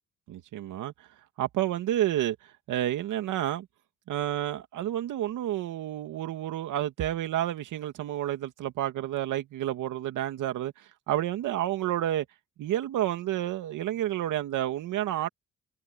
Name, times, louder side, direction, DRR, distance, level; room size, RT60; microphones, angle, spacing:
voice 1, 0.3-0.9 1.4-3.7 4.1-12.3 12.6-15.3, right 12 dB, 85° right, 2.5 m, -30 dB
cardioid pair, 90°, 30 cm